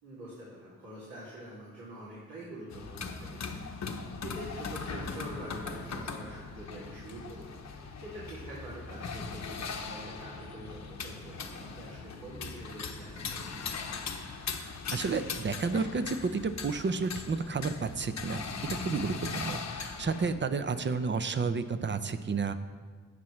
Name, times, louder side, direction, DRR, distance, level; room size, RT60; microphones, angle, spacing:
voice 1, 0.0-13.6 20.7-20.9, right 1 dB, 75° right, -8 dB, 2.7 m, -45 dB
sound 1, 2.7-20.3, left 4 dB, 50° left, 1.0 m, -39 dB
voice 2, 14.9-18.4 18.8-22.5, right 4 dB, 35° right, 11 dB, 0.7 m, -31 dB
16.5 x 5.8 x 3.2 m, 1.5 s
cardioid pair, 65°, 35 cm